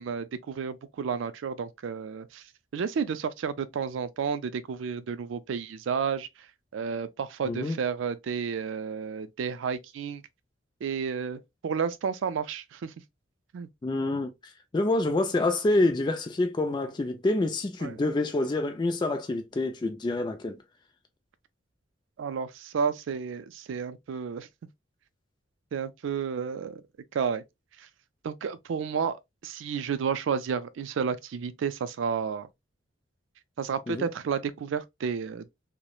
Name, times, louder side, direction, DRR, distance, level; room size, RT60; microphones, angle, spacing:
voice 1, 0.0-2.4 2.7-6.3 6.7-10.2 10.8-12.9 13.5-13.7 17.8-18.0 22.2-24.5 25.7-26.8 27.1-27.4 28.2-29.2 29.4-32.5 33.6-35.5, right 6 dB, 85° right, 0.3 m, -31 dB
voice 2, 7.4-7.8 13.8-14.3 14.7-20.6 33.9-34.1, left 2 dB, 25° left, 0.3 m, -27 dB
3.0 x 2.0 x 2.2 m
head